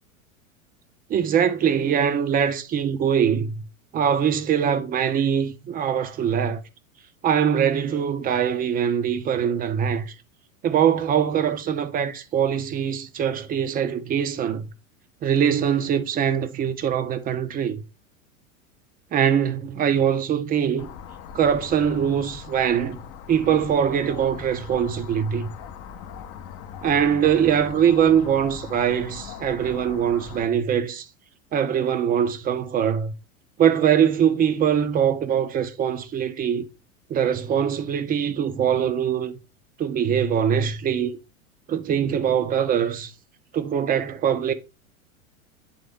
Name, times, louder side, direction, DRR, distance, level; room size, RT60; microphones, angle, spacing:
voice 1, 1.1-3.5 3.9-6.6 7.2-10.1 10.6-14.7 15.2-17.8 19.1-20.9 21.3-23.0 23.3-25.5 26.8-31.1 31.5-33.1 33.6-36.6 37.1-39.3 39.8-41.1 41.7-43.1 43.5-44.5, right 8 dB, 20° right, 0.6 m, -22 dB
sound 1, 20.8-30.5, left 7 dB, 35° left, 0.6 m, -40 dB
8.6 x 3.5 x 3.4 m
figure-of-eight pair, 90°, 43 cm